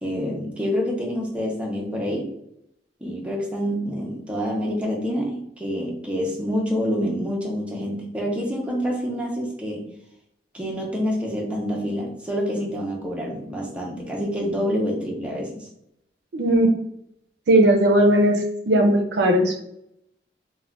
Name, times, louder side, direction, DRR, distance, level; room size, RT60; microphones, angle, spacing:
voice 1, 0.0-2.3 3.0-9.9 10.5-15.7, equal, 5° right, -2 dB, 0.5 m, -27 dB
voice 2, 16.3-16.8 17.5-19.6, right 1 dB, 65° right, 3 dB, 0.4 m, -18 dB
2.3 x 2.1 x 3.4 m, 0.76 s
head